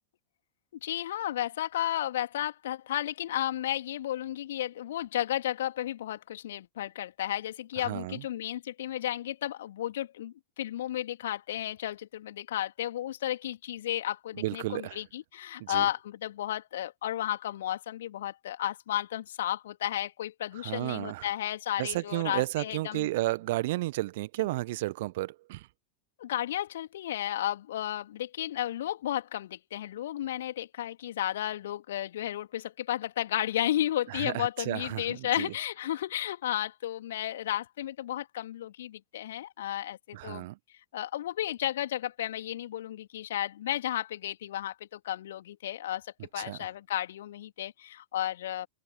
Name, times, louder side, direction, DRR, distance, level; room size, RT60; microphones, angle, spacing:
voice 1, 0.8-23.1 26.2-40.5 40.9-48.7, left 12 dB, 60° left, 3.1 m, -33 dB
voice 2, 7.8-8.2 14.4-15.0 15.6-15.9 20.6-21.3 21.8-25.7 34.1-35.5 40.1-40.6 46.4-46.6, right 18 dB, 50° right, 1.4 m, -32 dB
figure-of-eight pair, 90°, 0 cm